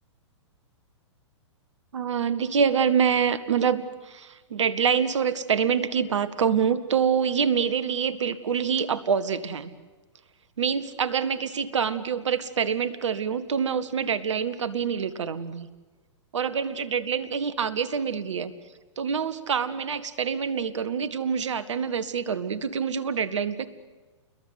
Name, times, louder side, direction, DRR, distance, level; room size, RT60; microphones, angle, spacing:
voice 1, 1.9-9.7 10.6-15.7 16.3-18.5 19.0-23.7, right 7 dB, 70° right, 14 dB, 1.7 m, -26 dB
29.5 x 21.5 x 8.1 m, 1.3 s
hypercardioid pair, 115°, 16 cm